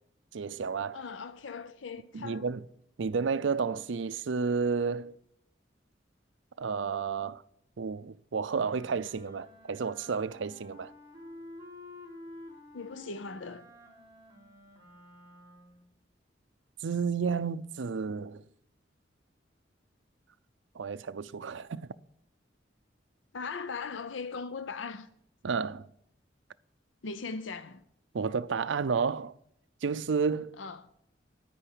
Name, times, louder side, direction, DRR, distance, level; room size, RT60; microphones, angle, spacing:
voice 1, 0.3-1.0 2.1-2.6 3.0-5.1 6.6-7.4 7.8-10.9 16.8-18.4 20.8-21.9 25.4-25.9 28.1-29.3 29.8-30.6, right 5 dB, 75° right, 0.5 m, -31 dB
voice 2, 0.9-2.5 12.7-13.7 23.3-25.1 27.0-27.8 30.6-30.9, left 4 dB, 85° left, 0.6 m, -39 dB
Wind instrument woodwind instrument, 8.4-15.8, left 1 dB, 15° right, 3.9 m, -51 dB
10.0 x 9.9 x 8.2 m
head